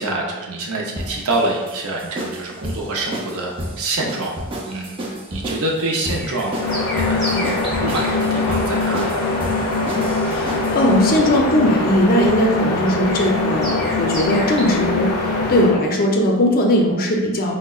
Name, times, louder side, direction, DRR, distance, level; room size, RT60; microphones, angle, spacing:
voice 1, 0.0-4.3 4.7-5.0 5.3-6.6 6.9-7.5 7.8-9.1, right 2 dB, 70° right, -1 dB, 0.6 m, -26 dB
sound 1, 1.0-10.8, right 1 dB, 25° right, 0.5 m, -31 dB
sound 2, 2.0-14.7, equal, ahead, 0.8 m, -37 dB
sound 3, 6.5-15.8, left 3 dB, 85° left, 0.5 m, -22 dB
voice 2, 10.2-17.6, equal, 40° left, 0 dB, 0.5 m, -19 dB
4.6 x 2.1 x 2.3 m, 1.1 s
head